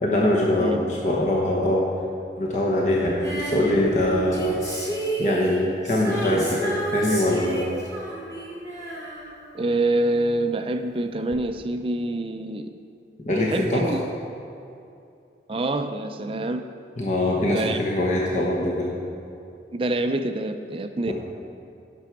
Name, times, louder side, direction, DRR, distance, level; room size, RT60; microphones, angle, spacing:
voice 1, 0.0-1.8 2.4-4.5 5.2-7.8 13.2-13.9 17.0-18.9 21.1-21.2, left 1 dB, 40° left, -3 dB, 1.0 m, -23 dB
Female singing, 3.2-10.2 11.3-11.4, right 2 dB, 20° left, 2.0 m, -31 dB
voice 2, 9.5-12.7 13.4-14.0 15.5-16.6 17.5-18.1 19.7-21.1, right 2 dB, 30° right, 7 dB, 0.4 m, -26 dB
11.5 x 6.1 x 5.9 m, 2.6 s
head